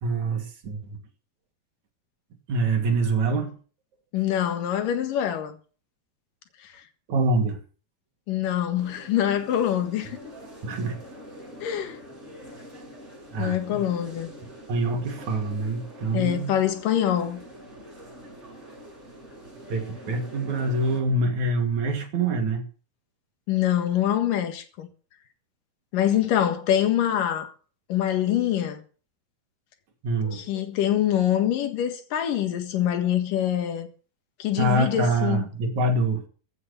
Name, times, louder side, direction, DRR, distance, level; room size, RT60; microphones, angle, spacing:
voice 1, 0.0-1.0 2.5-3.5 7.1-7.6 10.6-11.0 13.3-13.8 14.7-16.6 19.7-22.6 28.3-28.4 30.0-30.6 34.6-36.2, right 2 dB, 50° right, 3.6 m, -25 dB
voice 2, 4.1-5.5 6.6-6.7 8.3-10.2 11.6-12.0 13.4-14.3 16.1-17.4 23.5-24.9 25.9-27.5 27.9-28.8 30.3-33.9 34.4-35.4, left 11 dB, 65° left, 3.0 m, -25 dB
sound 1, 8.8-21.0, equal, 15° right, 7.2 m, -45 dB
15.5 x 8.6 x 6.7 m
omnidirectional pair, 4.5 m